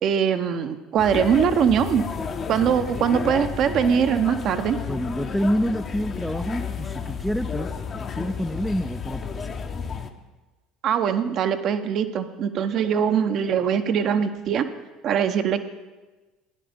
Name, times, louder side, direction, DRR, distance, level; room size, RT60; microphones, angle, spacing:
voice 1, 0.0-2.0 2.5-4.8 10.8-14.6 15.0-15.6, right 8 dB, 50° right, 9 dB, 0.7 m, -22 dB
sound 1, 1.0-10.1, left 6 dB, 40° left, 0.8 m, -32 dB
voice 2, 4.9-9.5, equal, ahead, 6 dB, 0.4 m, -27 dB
13.5 x 10.0 x 3.5 m, 1.2 s
hypercardioid pair, 70°, 0 cm